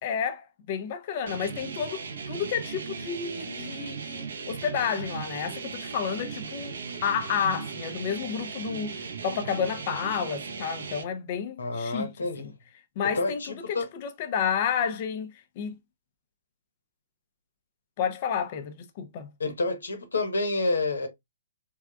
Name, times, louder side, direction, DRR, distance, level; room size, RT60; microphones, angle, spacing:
voice 1, 0.0-6.8 7.0-12.1 12.4-12.5 13.0-13.4 13.7-15.7 18.0-19.3, left 7 dB, 45° left, 0.7 m, -31 dB
sound 1, 1.3-11.0, right 5 dB, 70° right, 0.9 m, -37 dB
voice 2, 11.6-12.5 13.1-13.9 19.4-21.1, left 2 dB, 80° left, 1.1 m, -28 dB
3.6 x 3.3 x 2.4 m
hypercardioid pair, 130°, 0 cm